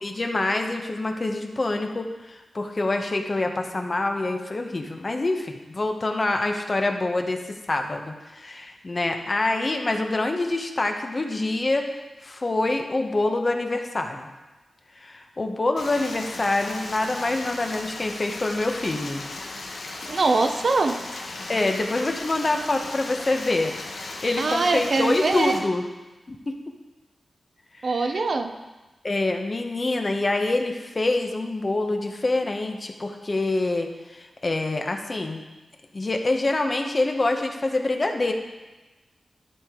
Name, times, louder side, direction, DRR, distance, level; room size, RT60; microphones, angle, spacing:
voice 1, 0.0-11.9 12.2-14.3 15.0-19.2 21.5-25.8 26.3-26.4 27.8-28.2 29.0-35.4 35.9-38.3, left 2 dB, 40° left, 4 dB, 0.9 m, -26 dB
Stream, 15.8-25.6, left 2 dB, 80° left, 1.0 m, -36 dB
voice 2, 20.1-21.0 24.4-25.6 27.8-28.5, right 3 dB, 60° right, 6 dB, 0.7 m, -23 dB
12.0 x 5.1 x 3.7 m, 1.1 s
cardioid pair, 70°, 0 cm